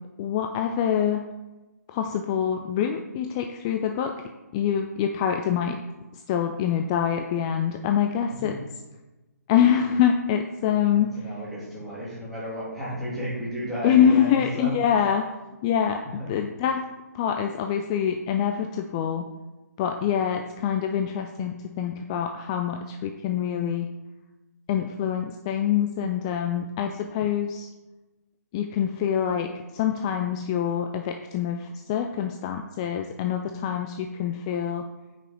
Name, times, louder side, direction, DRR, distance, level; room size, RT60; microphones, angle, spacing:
voice 1, 0.2-1.2 1.9-4.1 4.5-5.8 6.3-8.5 9.5-11.1 13.8-15.2 15.6-16.0 16.3-16.8 17.1-19.3 19.8-23.9 24.7-27.7 28.5-34.9, left 9 dB, 20° left, 5 dB, 0.4 m, -25 dB
voice 2, 10.7-14.7 16.2-16.3 20.0-20.1, equal, ahead, -10 dB, 3.0 m, -33 dB
9.0 x 5.7 x 4.5 m, 1.1 s
figure-of-eight pair, 135°, 9 cm